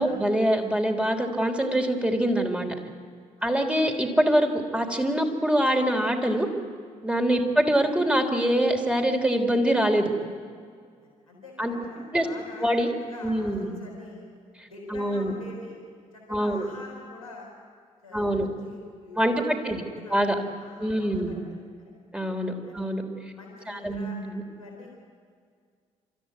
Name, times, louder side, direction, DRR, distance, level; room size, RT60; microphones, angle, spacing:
voice 1, 0.0-2.7 3.4-6.5 7.0-10.1 11.6-11.7 12.1-12.3 12.6-12.9 13.2-13.8 14.9-15.3 16.3-16.7 18.1-18.5 19.2-19.8 20.1-20.4 20.8-21.4 22.1-23.0 23.7-24.4, right 1 dB, 5° right, 4 dB, 3.4 m, -24 dB
voice 2, 11.0-12.7 13.0-14.2 14.7-15.8 16.1-17.5 18.0-20.2 20.5-21.4 21.8-21.9 22.6-22.8 23.3-24.2 24.5-24.9, left 2 dB, 90° left, -3 dB, 3.9 m, -45 dB
27.5 x 14.0 x 9.6 m, 2.1 s
figure-of-eight pair, 40°, 17 cm